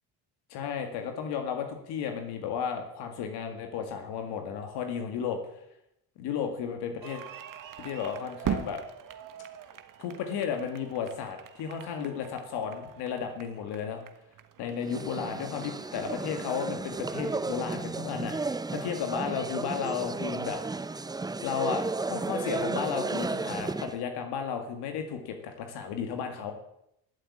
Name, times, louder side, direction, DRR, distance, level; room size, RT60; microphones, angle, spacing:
voice 1, 0.5-5.4 6.2-7.2 7.8-8.8 10.0-14.0 14.6-20.6 20.9-21.0 21.4-26.5, left 7 dB, 80° left, 5 dB, 2.1 m, -33 dB
sound 1, 7.0-17.8, right 8 dB, 55° right, 1.4 m, -42 dB
sound 2, 14.8-24.0, right 3 dB, 10° right, 0.5 m, -34 dB
13.0 x 8.0 x 8.6 m, 0.80 s
supercardioid pair, 85°, 39 cm